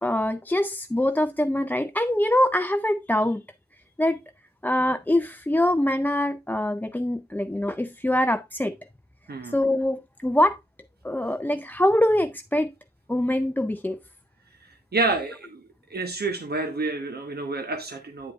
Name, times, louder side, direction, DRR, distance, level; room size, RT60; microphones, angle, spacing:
voice 1, 0.0-3.4 4.0-4.2 4.6-8.8 9.4-10.6 11.0-12.7 13.1-14.0, left 1 dB, 10° left, 0.4 m, -24 dB
voice 2, 14.9-15.6 15.9-18.3, right 3 dB, 70° right, 1.1 m, -28 dB
9.4 x 7.9 x 2.4 m
wide cardioid pair, 80°, 17 cm